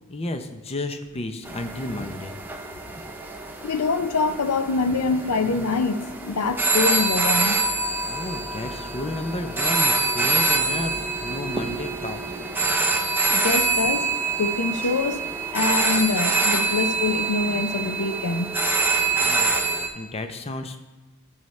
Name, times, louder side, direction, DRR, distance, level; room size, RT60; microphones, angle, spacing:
voice 1, 0.1-2.3 8.1-12.2 19.2-19.5 19.9-20.8, left 2 dB, 25° left, 0.6 m, -32 dB
sound 1, 1.4-19.9, right 3 dB, 10° right, 0.7 m, -25 dB
voice 2, 3.6-7.6 13.3-18.5, left 4 dB, 90° left, 0.6 m, -25 dB
14.5 x 5.6 x 3.2 m
head